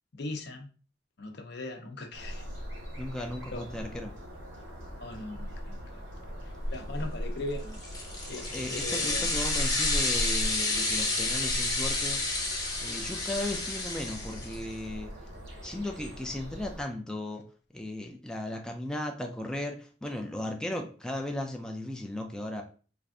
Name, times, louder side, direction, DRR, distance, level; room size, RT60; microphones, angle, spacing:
voice 1, 0.1-0.7 1.2-2.5 3.5-3.6 5.0-6.0 6.7-7.8 8.3-9.3, left 2 dB, 65° left, 4 dB, 0.7 m, -39 dB
sound 1, 2.1-16.8, equal, 80° right, 1.2 m, -39 dB
voice 2, 3.0-4.1 8.4-12.2 12.8-15.1 15.6-17.4 17.7-22.6, left 1 dB, 5° left, 2 dB, 0.3 m, -36 dB
sound 2, 7.7-14.7, left 3 dB, 20° left, 0.9 m, -30 dB
3.3 x 2.5 x 3.6 m, 0.39 s
head